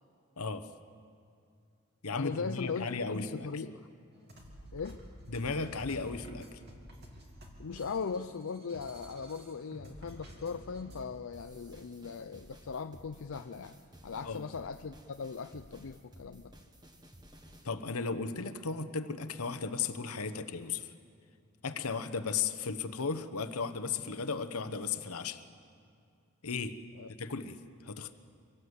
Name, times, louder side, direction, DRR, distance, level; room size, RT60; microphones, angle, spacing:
voice 1, 0.4-0.7 2.0-3.6 5.3-6.5 14.2-14.4 17.6-20.9 21.6-25.4 26.4-26.7 27.2-28.1, left 4 dB, 85° left, 10 dB, 1.1 m, -35 dB
voice 2, 2.1-3.8 4.7-5.0 7.6-13.8 14.0-16.5 27.0-27.1, left 5 dB, 65° left, 7 dB, 0.5 m, -39 dB
sound 1, 4.1-11.0, equal, 50° right, 3.0 m, -50 dB
sound 2, 11.3-17.7, equal, 20° right, 1.4 m, -56 dB
25.0 x 18.0 x 8.1 m, 2.4 s
head